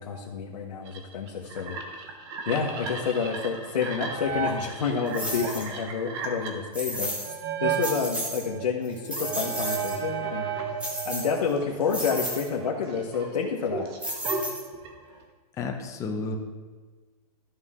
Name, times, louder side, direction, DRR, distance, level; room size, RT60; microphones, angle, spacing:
voice 1, 0.0-2.1 2.4-7.1 7.6-10.7 11.0-13.9, left 5 dB, 90° left, -2 dB, 1.2 m, -29 dB
sound 1, 0.9-7.9 8.4-11.3 11.6-15.2, right 5 dB, 40° right, 1.2 m, -34 dB
sound 2, 5.1-5.7 6.7-7.4 7.7-8.4 8.8-10.0 10.8-11.5 11.9-12.5 14.0-14.9, equal, 5° right, 1.2 m, -33 dB
voice 2, 15.6-16.4, left 3 dB, 15° left, 3 dB, 0.8 m, -31 dB
13.5 x 5.7 x 3.7 m, 1.4 s
hypercardioid pair, 155°, 20 cm